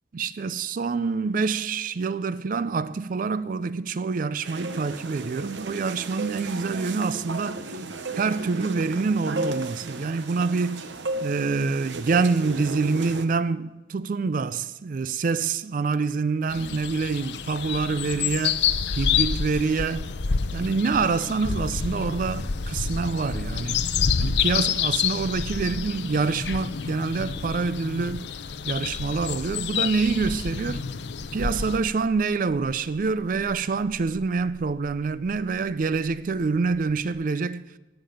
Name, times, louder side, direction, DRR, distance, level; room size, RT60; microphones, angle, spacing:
voice 1, 0.1-7.8 8.1-10.8 11.2-18.6 18.9-20.1 20.5-23.9 24.2-28.2 28.6-30.8 31.3-37.6, right 4 dB, 45° right, 0.4 m, -26 dB
sound 1, 4.4-13.3, right 2 dB, 85° right, 1.0 m, -34 dB
sound 2, 16.5-31.8, left 6 dB, 70° left, 0.7 m, -28 dB
Buzz, 31.0-37.1, equal, 20° left, 4.4 m, -49 dB
16.5 x 6.8 x 9.3 m
head